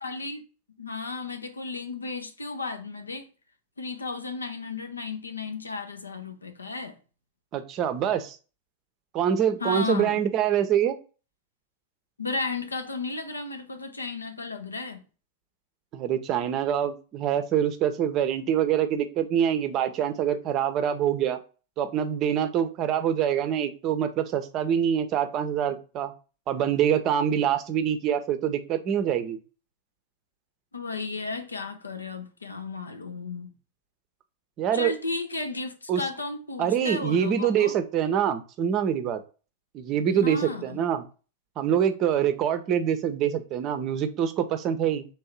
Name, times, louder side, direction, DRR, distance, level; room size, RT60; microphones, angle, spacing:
voice 1, 0.0-0.4 0.8-3.3 3.8-7.0 9.6-10.2 12.2-15.0 30.7-33.5 34.7-37.8 40.1-40.8, left 3 dB, 80° left, 0.6 m, -34 dB
voice 2, 7.5-8.4 9.1-11.0 15.9-21.4 21.8-26.1 26.5-29.4 34.6-34.9 35.9-36.1 36.6-39.2 39.7-41.0 41.6-45.1, right 9 dB, 35° right, 0.6 m, -25 dB
3.3 x 2.7 x 4.5 m
figure-of-eight pair, 90°, 0 cm